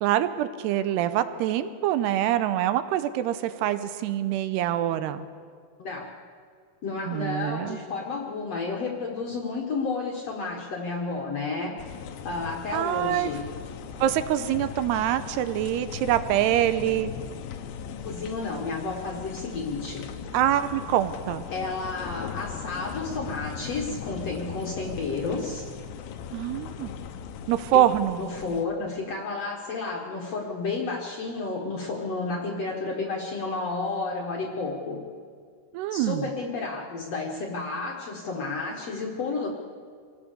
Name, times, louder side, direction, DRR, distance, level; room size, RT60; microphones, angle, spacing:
voice 1, 0.0-5.2 7.1-7.8 12.7-13.3 14.0-17.1 20.3-21.4 26.3-26.9 27.5-28.2 35.7-36.3, right 12 dB, 80° right, 12 dB, 2.7 m, -25 dB
voice 2, 6.8-11.8 12.2-13.4 18.1-20.1 21.5-25.7 28.2-35.0 35.9-39.5, left 3 dB, 55° left, 0 dB, 2.0 m, -31 dB
sound 1, 11.8-28.6, left 7 dB, 70° left, 2.5 m, -38 dB
26.0 x 17.0 x 6.8 m, 2.1 s
omnidirectional pair, 5.1 m